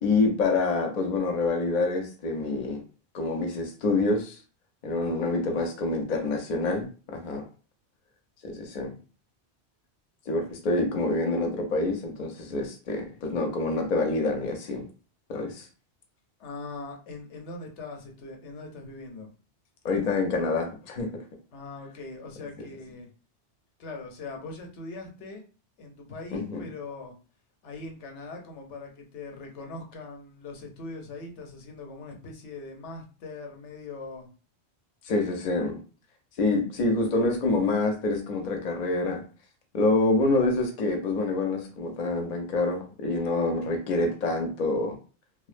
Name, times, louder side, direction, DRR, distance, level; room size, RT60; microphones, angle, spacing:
voice 1, 0.0-2.8 3.1-4.4 4.8-7.4 8.4-8.9 10.3-14.9 15.3-15.7 19.8-21.1 26.3-26.6 35.0-35.8 36.4-39.2 39.7-45.0, left 2 dB, 50° left, 0.6 m, -26 dB
voice 2, 16.4-19.3 21.5-23.1 23.8-25.4 25.8-27.1 27.6-34.3, left 3 dB, 85° left, 0.9 m, -41 dB
2.4 x 2.1 x 2.4 m
omnidirectional pair, 1.1 m